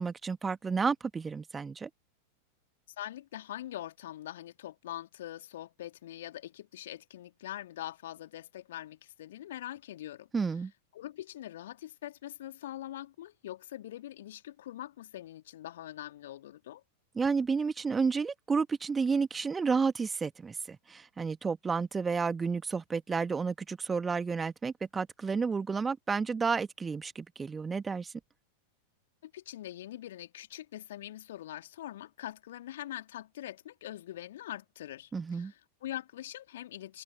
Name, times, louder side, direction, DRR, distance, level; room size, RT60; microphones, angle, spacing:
voice 1, 0.0-1.9 10.3-10.7 17.1-28.1 35.1-35.5, right 5 dB, 15° right, 1.6 m, -31 dB
voice 2, 3.0-10.3 10.9-16.8 29.2-37.0, left 13 dB, 60° left, 2.8 m, -43 dB
figure-of-eight pair, 90°, 0 cm